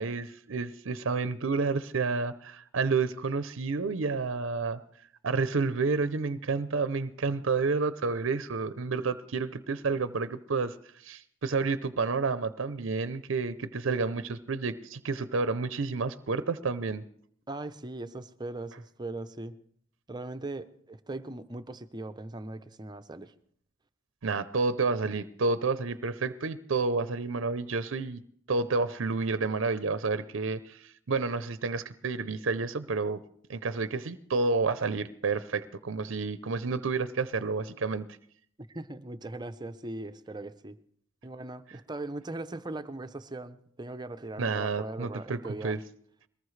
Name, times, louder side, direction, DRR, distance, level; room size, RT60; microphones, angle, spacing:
voice 1, 0.0-4.8 5.2-17.0 24.2-28.2 28.5-33.2 33.5-38.1 44.4-45.8, right 4 dB, 70° right, 13 dB, 0.6 m, -30 dB
voice 2, 17.5-19.6 20.1-23.3 38.7-40.8 41.2-45.8, right 2 dB, 20° right, 10 dB, 0.6 m, -39 dB
22.0 x 19.0 x 3.2 m, 0.64 s
head